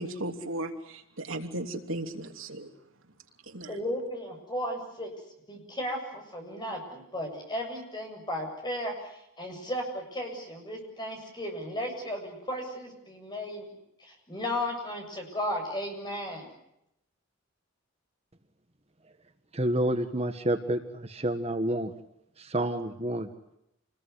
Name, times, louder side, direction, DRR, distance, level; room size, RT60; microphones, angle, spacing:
voice 1, 0.0-2.7 3.5-3.8, right 1 dB, 75° right, 5 dB, 2.9 m, -36 dB
voice 2, 3.7-5.1 5.5-13.7 14.0-16.5, equal, 20° left, 2 dB, 7.7 m, -35 dB
voice 3, 19.5-21.9 22.4-23.3, right 1 dB, 30° right, 8 dB, 1.5 m, -29 dB
28.5 x 21.0 x 9.6 m, 0.80 s
head